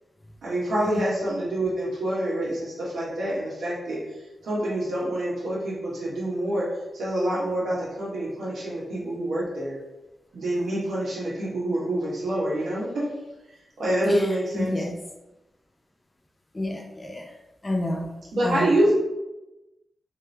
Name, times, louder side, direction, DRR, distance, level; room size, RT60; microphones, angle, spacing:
voice 1, 0.4-4.0 4.4-9.8 10.3-13.1 13.8-14.7 18.3-18.9, right 1 dB, 80° right, -6 dB, 1.3 m, -26 dB
voice 2, 14.5-14.9 16.5-17.3 17.6-18.1 18.4-18.7, left 1 dB, 30° left, 1 dB, 0.6 m, -29 dB
3.6 x 2.7 x 3.3 m, 1.0 s
cardioid pair, 45°, 0 cm